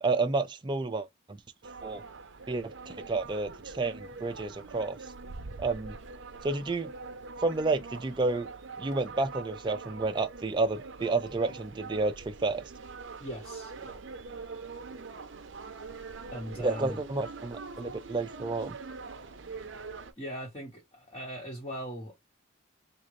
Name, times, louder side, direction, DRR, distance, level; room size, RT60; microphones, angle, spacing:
voice 1, 0.0-1.4 1.8-2.0 2.5-5.0 5.6-6.0 6.4-6.9 7.4-8.5 8.8-12.7 16.6-18.8, right 3 dB, 25° right, 0.4 m, -30 dB
sound 1, 1.6-20.1, right 4 dB, 65° right, 0.6 m, -44 dB
voice 2, 13.2-14.0 16.3-17.0 20.2-22.2, equal, 25° left, 1.3 m, -39 dB
3.8 x 2.4 x 3.1 m
head